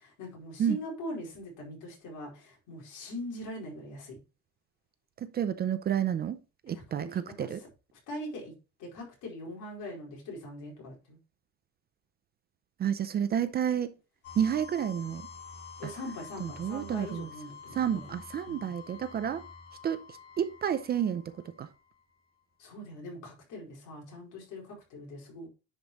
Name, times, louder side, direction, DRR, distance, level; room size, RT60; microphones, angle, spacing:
voice 1, 0.2-4.2 6.7-7.5 8.1-8.5 8.8-11.2 15.8-18.0 18.5-18.7 22.6-25.5, left 1 dB, 70° left, 4.6 m, -42 dB
voice 2, 5.2-6.4 6.7-7.6 12.8-13.9 14.4-15.3 15.8-15.9 16.4-17.3 17.7-19.4 19.8-20.0 20.4-21.3 21.6-21.7, right 9 dB, 30° right, 0.5 m, -30 dB
sound 1, 14.2-22.0, left 5 dB, 45° left, 2.2 m, -48 dB
10.0 x 5.3 x 3.0 m
cardioid pair, 170°, 32 cm